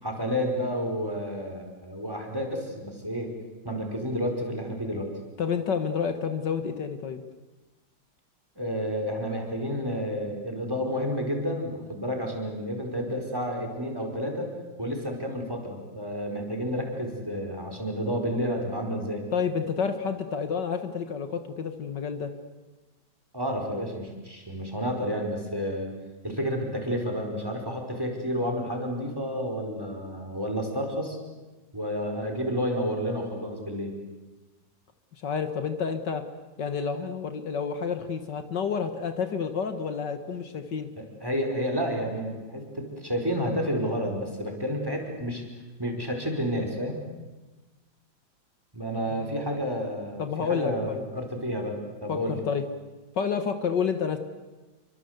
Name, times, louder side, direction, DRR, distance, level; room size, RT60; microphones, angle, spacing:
voice 1, 0.0-3.3 3.6-5.1 8.6-14.5 14.8-19.2 23.3-26.0 26.2-31.2 31.7-33.9 41.0-45.4 45.8-47.0 48.7-52.4, equal, 10° right, 3 dB, 4.8 m, -30 dB
voice 2, 5.4-7.2 19.3-22.3 35.2-36.2 36.6-40.9 49.1-49.5 50.2-51.1 52.1-52.6 53.2-54.2, left 6 dB, 70° left, 8 dB, 2.1 m, -29 dB
28.0 x 24.5 x 8.1 m, 1.2 s
omnidirectional pair, 2.0 m